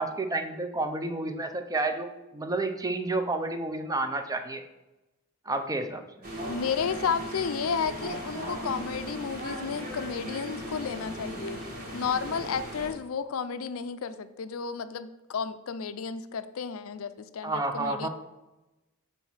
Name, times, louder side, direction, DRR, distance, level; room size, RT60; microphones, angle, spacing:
voice 1, 0.0-4.6 5.5-6.3 17.4-18.1, right 2 dB, 15° right, 7 dB, 0.5 m, -30 dB
sound 1, 6.2-12.9, equal, 45° right, 1.6 m, -37 dB
voice 2, 6.5-11.6 11.9-18.1, left 6 dB, 70° left, 12 dB, 0.5 m, -32 dB
5.5 x 4.2 x 6.2 m, 1.0 s
head